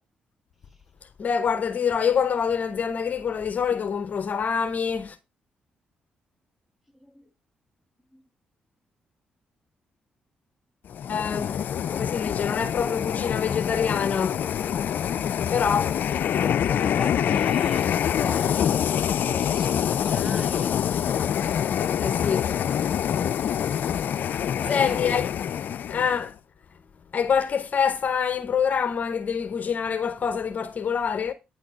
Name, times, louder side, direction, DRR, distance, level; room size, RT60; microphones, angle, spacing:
voice 1, 1.2-5.2 11.1-11.6 11.9-14.4 15.5-16.0 21.6-22.5 24.7-25.3 25.9-26.3 27.1-31.3, left 7 dB, 55° left, 0.8 m, -26 dB
sound 1, 10.9-26.3, left 9 dB, 70° left, 0.5 m, -25 dB
voice 2, 16.8-19.0 19.3-20.8 24.5-25.3, left 3 dB, 10° right, 2.5 m, -38 dB
9.4 x 4.2 x 4.8 m
supercardioid pair, 65°, 3 cm